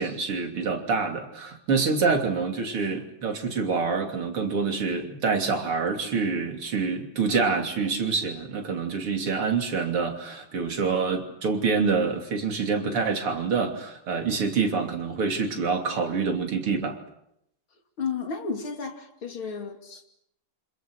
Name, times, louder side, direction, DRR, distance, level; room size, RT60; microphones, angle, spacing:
voice 1, 0.0-17.0, right 4 dB, 80° right, 3 dB, 3.9 m, -26 dB
voice 2, 18.0-20.1, left 5 dB, 65° left, 4 dB, 3.5 m, -33 dB
28.0 x 27.0 x 6.4 m, 0.78 s
omnidirectional pair, 2.4 m